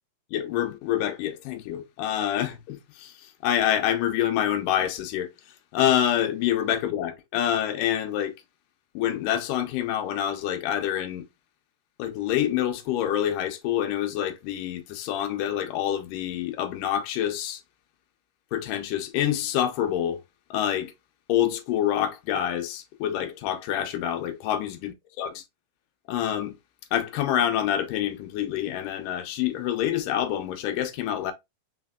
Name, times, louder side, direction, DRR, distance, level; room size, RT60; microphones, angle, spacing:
voice 1, 0.3-5.3 5.7-8.3 8.9-11.2 12.0-17.6 18.5-20.2 20.5-20.9 21.3-24.9 25.2-25.4 26.1-26.6 26.9-31.3, left 11 dB, 85° left, 2.3 m, -27 dB
4.9 x 4.1 x 2.2 m
omnidirectional pair, 3.8 m